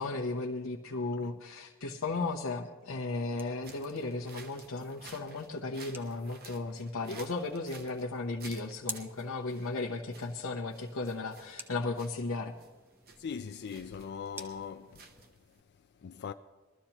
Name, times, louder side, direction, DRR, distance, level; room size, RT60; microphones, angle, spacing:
voice 1, 0.0-12.5, left 3 dB, 85° left, 0.9 m, -35 dB
sound 1, 2.9-15.3, right 1 dB, 10° right, 0.8 m, -52 dB
sound 2, 3.6-15.6, right 4 dB, 50° right, 0.9 m, -54 dB
voice 2, 13.2-15.0 16.0-16.3, left 6 dB, 50° left, 0.4 m, -40 dB
21.5 x 13.5 x 2.9 m
head